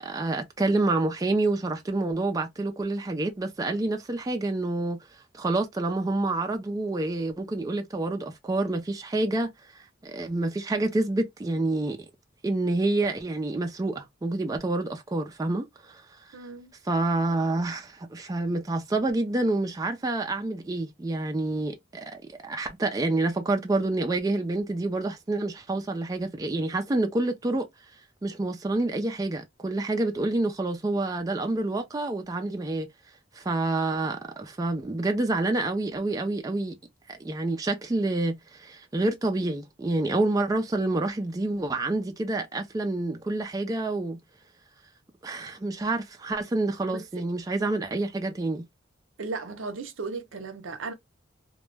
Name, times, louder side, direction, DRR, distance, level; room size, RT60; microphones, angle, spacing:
voice 1, 0.0-5.0 5.3-12.0 12.4-16.2 16.9-27.7 28.2-32.9 33.3-36.8 37.1-44.2 45.2-48.6, right 2 dB, 20° right, 0.3 m, -28 dB
voice 2, 16.3-16.7 46.9-47.2 49.2-50.9, right 4 dB, 85° right, 0.6 m, -36 dB
2.2 x 2.0 x 3.1 m
head